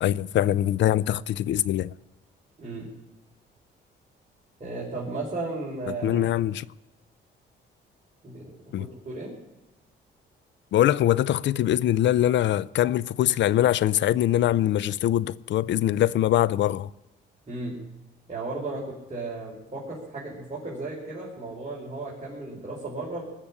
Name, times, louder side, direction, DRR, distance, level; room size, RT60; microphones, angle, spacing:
voice 1, 0.0-1.9 6.0-6.6 8.7-8.9 10.7-16.9, left 12 dB, 65° left, 0.5 m, -23 dB
voice 2, 2.6-2.9 4.6-6.2 8.2-8.4 8.8-9.3 17.5-17.8 18.3-23.2, right 2 dB, 30° right, 5.3 m, -35 dB
20.5 x 6.8 x 10.0 m
cardioid pair, 90°, 20 cm